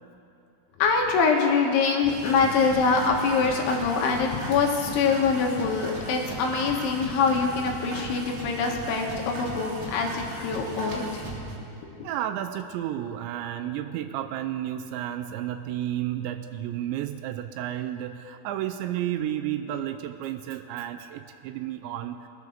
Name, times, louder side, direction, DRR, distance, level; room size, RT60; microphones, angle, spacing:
voice 1, 0.8-11.2 11.7-12.1, left 5 dB, 80° left, 1 dB, 3.7 m, -24 dB
sound 1, 2.0-11.6, right 1 dB, 60° right, 3.9 m, -37 dB
voice 2, 12.0-22.3, right 11 dB, 85° right, 8 dB, 2.7 m, -32 dB
22.5 x 8.4 x 6.5 m, 2.7 s
omnidirectional pair, 5.5 m